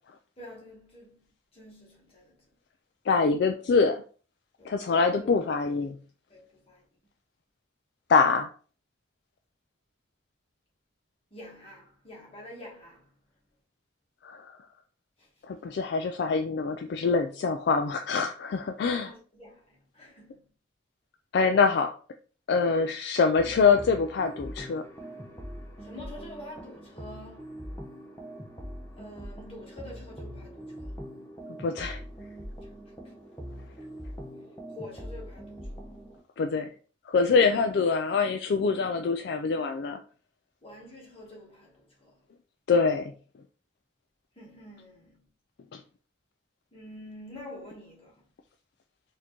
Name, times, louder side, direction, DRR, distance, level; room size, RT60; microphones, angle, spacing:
voice 1, 0.4-2.4 4.6-5.3 6.3-6.9 11.3-13.1 15.2-15.3 18.8-20.5 25.8-27.7 29.0-31.0 32.6-33.1 34.7-35.9 40.6-42.2 44.3-45.3 46.7-48.2, left 1 dB, 30° left, 1.3 m, -47 dB
voice 2, 3.1-4.0 4.6-6.0 8.1-8.5 14.2-14.5 15.5-19.1 21.3-21.9 22.5-24.8 31.6-32.0 36.4-36.7 37.1-40.0 42.7-43.1 45.7-45.8, left 4 dB, 55° left, 0.3 m, -24 dB
sound 1, 23.4-36.2, equal, 15° left, 0.7 m, -42 dB
4.2 x 2.7 x 3.0 m
head